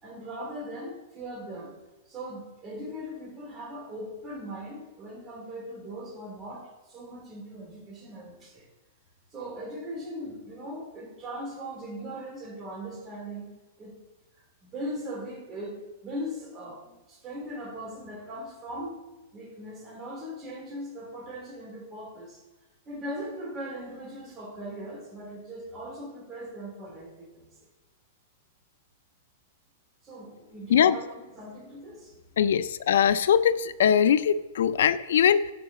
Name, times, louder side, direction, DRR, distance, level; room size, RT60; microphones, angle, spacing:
voice 1, 0.0-1.7 2.0-8.7 9.3-13.4 13.8-13.9 14.6-18.9 19.3-22.4 22.8-27.5 30.0-32.1, equal, 20° right, -2 dB, 3.3 m, -39 dB
voice 2, 32.4-35.5, left 8 dB, 80° left, 16 dB, 0.4 m, -21 dB
6.8 x 5.5 x 7.3 m, 1.1 s
supercardioid pair, 165°, 0 cm